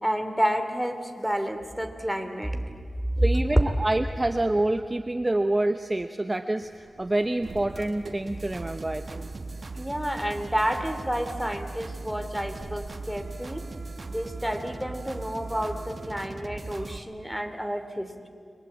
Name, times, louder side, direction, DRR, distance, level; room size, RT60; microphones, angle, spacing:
voice 1, 0.0-2.6 3.1-3.6 4.0-4.1 9.8-13.6 14.1-18.3, equal, ahead, 7 dB, 2.8 m, -29 dB
voice 2, 3.2-6.7 7.0-9.2, right 1 dB, 25° right, 8 dB, 1.0 m, -27 dB
sound 1, 6.6-16.3, right 3 dB, 70° right, 2.0 m, -48 dB
sound 2, 8.3-17.0, right 3 dB, 45° right, 1.5 m, -39 dB
30.0 x 23.0 x 8.6 m, 2.2 s
wide cardioid pair, 70°, 0 cm